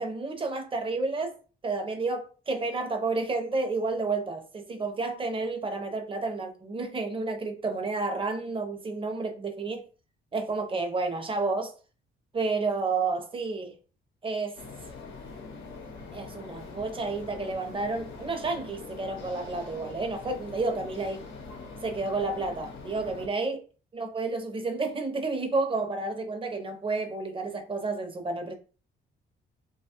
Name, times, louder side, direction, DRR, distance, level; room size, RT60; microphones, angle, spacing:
voice 1, 0.0-1.3 1.6-9.8 10.3-11.7 12.3-13.8 14.2-14.6 16.1-21.3 21.8-23.6 23.9-28.5, right 3 dB, 25° right, 0.7 m, -30 dB
sound 1, 14.6-23.3, left 4 dB, 85° left, 0.7 m, -43 dB
2.8 x 2.3 x 2.9 m
cardioid pair, 90°, 20 cm